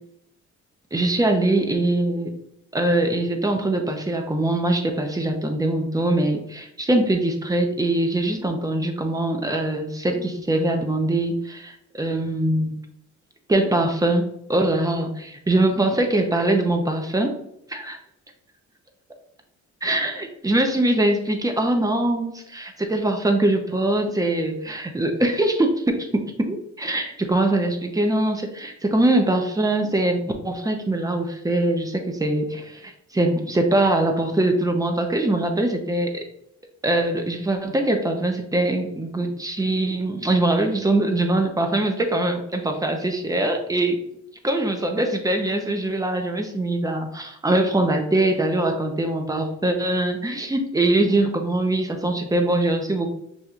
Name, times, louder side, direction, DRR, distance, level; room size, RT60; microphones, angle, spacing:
voice 1, 0.9-2.3 2.7-12.8 13.5-17.3 17.7-18.0 19.8-36.2 36.8-44.0 44.4-53.1, right 1 dB, 10° right, 4 dB, 0.7 m, -22 dB
6.5 x 2.7 x 2.4 m, 0.77 s
cardioid pair, 90°, 30 cm